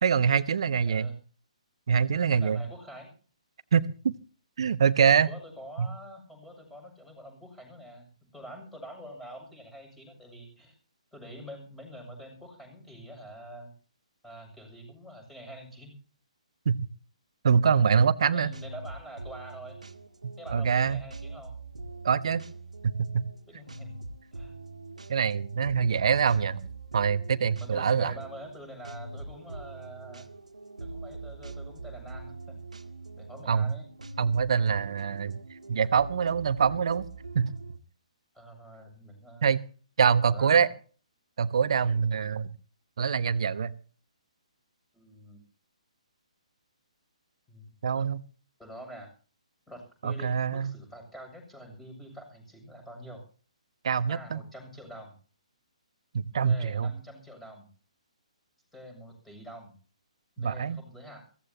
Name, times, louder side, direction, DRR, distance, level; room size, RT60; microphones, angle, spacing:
voice 1, 0.0-1.1 1.9-2.6 3.7-4.1 4.6-5.3 5.8-5.9 16.6-16.8 17.4-18.5 20.2-21.0 22.0-22.4 22.8-23.2 25.1-28.1 33.5-33.7 34.2-35.4 35.7-37.0 37.3-37.5 39.4-39.6 40.0-40.7 41.4-42.5 43.0-43.7 47.8-48.2 50.0-50.7 53.8-54.4 56.1-56.9 60.4-60.8, right 6 dB, 50° right, 16 dB, 1.1 m, -24 dB
voice 2, 2.4-3.1 5.2-10.8 11.1-13.7 14.2-15.9 18.3-19.8 20.4-21.5 23.5-23.9 24.3-24.5 27.6-30.3 30.8-32.6 33.2-33.9 38.3-39.5 40.0-40.7 44.9-45.4 47.5-47.6 48.6-49.1 49.7-53.2 54.1-55.1 56.4-57.7 58.7-59.7 60.4-61.2, equal, 5° left, 3 dB, 7.2 m, -46 dB
sound 1, 18.1-37.8, right 3 dB, 75° right, 1.8 m, -43 dB
22.5 x 16.5 x 2.9 m, 0.40 s
figure-of-eight pair, 130°, 4 cm